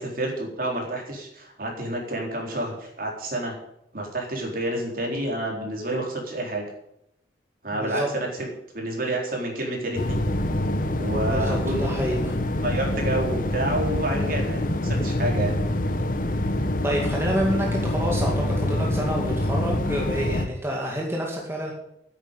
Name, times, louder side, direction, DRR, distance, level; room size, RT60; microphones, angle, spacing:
voice 1, 0.0-3.6 3.9-6.6 7.6-8.5 8.7-10.2 11.0-11.9 12.6-15.5, right 1 dB, 55° right, 0 dB, 4.0 m, -29 dB
voice 2, 7.7-8.1 11.3-12.3 16.8-21.7, equal, 15° right, -1 dB, 2.1 m, -28 dB
sound 1, 9.9-20.5, left 1 dB, 50° left, 1.2 m, -25 dB
9.9 x 9.1 x 9.1 m, 0.78 s
head